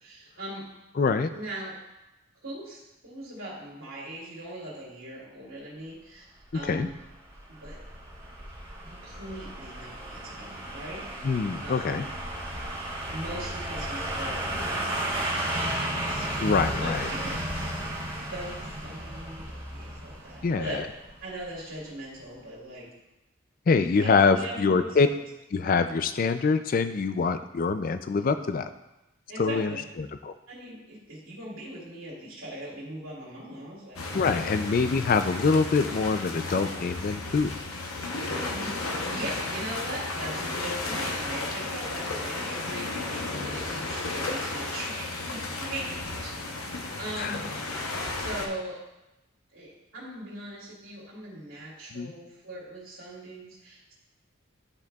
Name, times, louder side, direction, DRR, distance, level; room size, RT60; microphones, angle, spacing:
voice 1, 0.0-0.7 1.3-1.8 2.4-6.2 6.5-7.0 7.5-7.8 8.8-11.1 11.6-12.1 13.1-16.3 16.8-17.6 18.3-20.8 21.2-22.9 23.8-25.2 29.3-29.9 30.5-34.7 38.5-43.1 43.4-46.6 47.0-47.5 48.2-48.8 49.5-53.9, right 1 dB, 70° right, -7 dB, 2.6 m, -40 dB
voice 2, 1.0-1.3 6.7-6.9 11.2-12.1 16.4-17.0 20.4-20.8 23.7-25.1 25.5-28.7 29.4-30.3 34.1-37.5 42.7-42.9 47.2-47.4 51.9-52.1, left 4 dB, 40° left, 10 dB, 0.3 m, -25 dB
sound 1, 6.6-21.5 21.8-21.9, right 1 dB, 25° right, 1.9 m, -34 dB
sound 2, 34.0-48.5, left 2 dB, 85° left, 0.9 m, -33 dB
11.5 x 4.8 x 2.3 m, 0.94 s
head